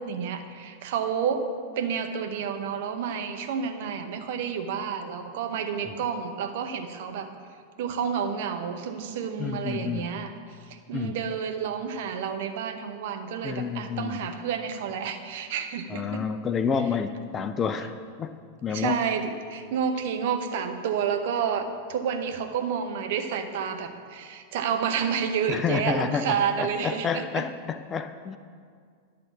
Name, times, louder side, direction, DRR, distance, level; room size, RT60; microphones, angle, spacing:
voice 1, 0.0-1.5 1.8-7.3 7.8-10.3 10.7-16.2 18.7-27.4, right 7 dB, 50° right, 6 dB, 0.7 m, -30 dB
voice 2, 9.4-10.1 10.9-11.2 13.4-14.2 15.9-17.9 18.2-19.0 25.5-28.4, left 6 dB, 25° left, 9 dB, 0.4 m, -29 dB
11.0 x 3.8 x 7.1 m, 2.1 s
figure-of-eight pair, 90°, 0 cm